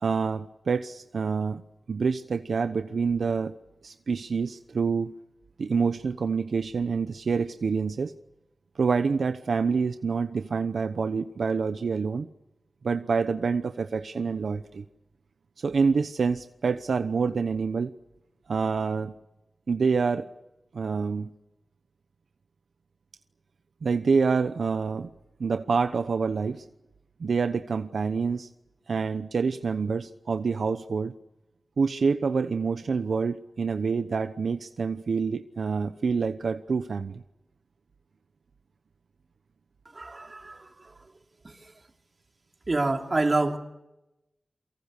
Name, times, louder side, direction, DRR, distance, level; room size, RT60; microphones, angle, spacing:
voice 1, 0.0-1.6 1.9-3.5 3.8-5.1 5.6-8.1 8.8-12.3 12.8-14.8 15.6-17.9 18.5-19.1 19.7-20.3 20.7-21.3 23.8-25.1 25.4-26.6 27.2-28.5 28.9-31.1 31.8-37.2, right 5 dB, 85° right, 10 dB, 0.9 m, -27 dB
voice 2, 39.9-40.9 41.4-41.5 42.7-43.6, right 2 dB, 40° right, 4 dB, 3.1 m, -27 dB
29.0 x 24.0 x 6.7 m, 0.94 s
wide cardioid pair, 70°, 0 cm